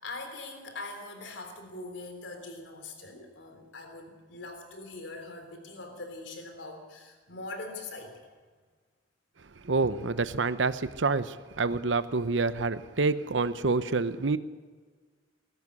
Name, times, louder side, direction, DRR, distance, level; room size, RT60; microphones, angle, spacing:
voice 1, 0.0-8.2, left 2 dB, 85° left, 5 dB, 3.6 m, -42 dB
voice 2, 9.6-14.4, right 3 dB, 80° right, 13 dB, 0.8 m, -27 dB
21.5 x 12.5 x 9.8 m, 1.5 s
head